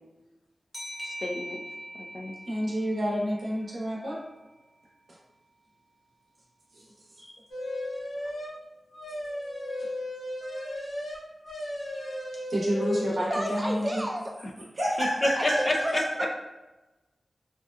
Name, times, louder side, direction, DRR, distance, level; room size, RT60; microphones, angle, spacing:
sound 1, 0.7-4.1, equal, 30° left, 0.9 m, -42 dB
voice 1, 1.0-1.6 1.9-2.4 7.2-7.3 15.0-16.3, left 1 dB, 45° left, 2 dB, 0.3 m, -30 dB
voice 2, 2.4-4.2 6.7-6.9 7.1-7.2 12.5-14.0 14.8-15.5, equal, 75° right, -5 dB, 0.8 m, -29 dB
sound 2, 7.5-8.6 8.9-13.7, left 1 dB, 90° left, 0.6 m, -35 dB
voice 3, 13.1-14.2 15.4-15.9 16.2-16.3, right 1 dB, 25° right, 1 dB, 0.5 m, -31 dB
2.7 x 2.2 x 2.3 m, 1.1 s
cardioid pair, 40°, 0 cm